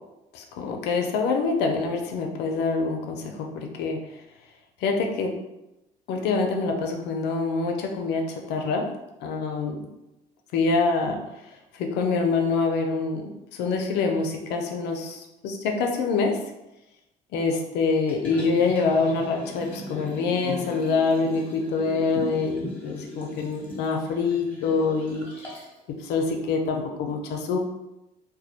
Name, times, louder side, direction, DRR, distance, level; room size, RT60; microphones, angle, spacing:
voice 1, 0.3-4.0 4.8-5.3 6.1-8.9 9.2-9.8 10.5-11.2 11.8-13.3 13.6-16.4 17.3-25.3 25.9-27.6, left 4 dB, 80° left, 3 dB, 0.4 m, -25 dB
Liquid, 18.1-25.8 26.2-26.3, left 2 dB, 10° left, 0.9 m, -38 dB
2.2 x 2.0 x 2.7 m, 0.95 s
cardioid pair, 110°, 17 cm